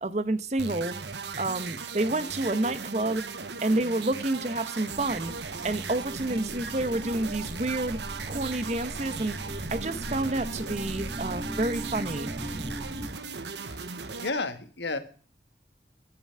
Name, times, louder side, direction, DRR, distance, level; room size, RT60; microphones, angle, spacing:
voice 1, 0.0-1.0 1.4-3.2 3.6-8.0 8.3-12.3, right 2 dB, 40° right, 0.9 m, -29 dB
sound 1, 0.6-14.3, right 5 dB, 85° right, 1.0 m, -37 dB
sound 2, 4.9-13.1, right 1 dB, 25° right, 2.7 m, -39 dB
voice 2, 14.2-15.0, left 3 dB, 85° left, 1.6 m, -32 dB
13.0 x 7.0 x 8.7 m
head